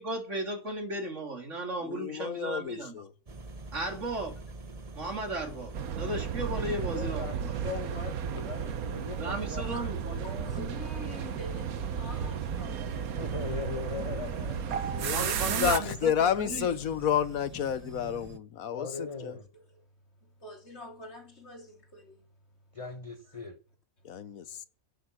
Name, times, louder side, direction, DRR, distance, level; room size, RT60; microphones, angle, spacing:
voice 1, 0.0-2.9 3.7-4.4 4.9-7.6 9.2-10.5 15.1-16.7, right 1 dB, 60° right, 3.2 m, -35 dB
voice 2, 1.9-3.1 14.9-19.4 24.0-24.6, left 8 dB, 80° left, 1.3 m, -30 dB
sound 1, 3.3-18.4, right 3 dB, 30° right, 1.2 m, -45 dB
sound 2, 5.7-15.8, right 8 dB, 90° right, 1.4 m, -34 dB
voice 3, 6.8-9.7 13.2-14.6 18.7-19.4 22.7-23.6, left 4 dB, 25° left, 1.2 m, -39 dB
voice 4, 10.2-14.0 14.2-15.5 17.5-17.6 19.5-19.8 20.2-22.3 23.3-23.4 24.5-24.7, left 1 dB, 50° left, 3.4 m, -47 dB
11.0 x 10.5 x 6.1 m
omnidirectional pair, 1.5 m